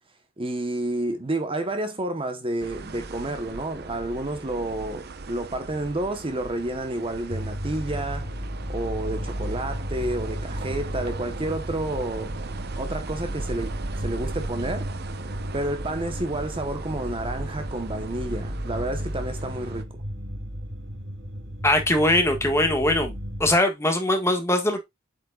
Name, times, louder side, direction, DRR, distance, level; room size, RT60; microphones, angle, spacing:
voice 1, 0.4-8.3 8.7-12.4 12.8-14.9 15.5-19.9, right 1 dB, 30° right, 1.0 m, -30 dB
sound 1, 2.6-19.8, right 3 dB, 55° right, 0.7 m, -37 dB
sound 2, 7.3-23.6, equal, 75° right, 2.3 m, -34 dB
voice 2, 21.6-23.1 23.4-24.8, left 1 dB, 15° left, 1.5 m, -21 dB
8.0 x 5.4 x 2.3 m
head